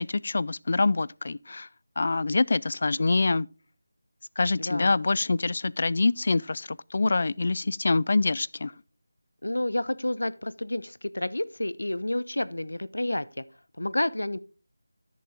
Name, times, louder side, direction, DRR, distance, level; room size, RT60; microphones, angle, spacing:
voice 1, 0.0-1.7 2.0-3.5 4.4-8.7, left 3 dB, 50° left, 0.3 m, -25 dB
voice 2, 4.6-5.0 9.4-13.4 13.8-14.4, left 1 dB, 85° left, 0.6 m, -30 dB
11.0 x 6.9 x 3.7 m
figure-of-eight pair, 165°, 0 cm